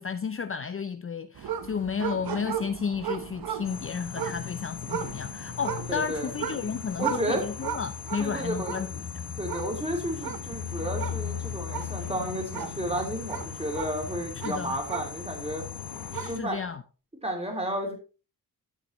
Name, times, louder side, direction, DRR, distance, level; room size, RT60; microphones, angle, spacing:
voice 1, 0.0-9.1 14.4-14.8 16.1-16.8, left 6 dB, 35° left, 0.5 m, -32 dB
sound 1, 1.3-15.5 15.9-16.6, right 8 dB, 70° right, 1.0 m, -37 dB
sound 2, 3.6-16.4, left 8 dB, 80° left, 1.1 m, -38 dB
voice 2, 5.9-6.4 7.0-7.4 8.2-8.8 9.4-15.6 16.2-16.6 17.2-17.9, right 1 dB, 15° right, 3.6 m, -32 dB
12.0 x 7.3 x 3.1 m
wide cardioid pair, 105°, 37 cm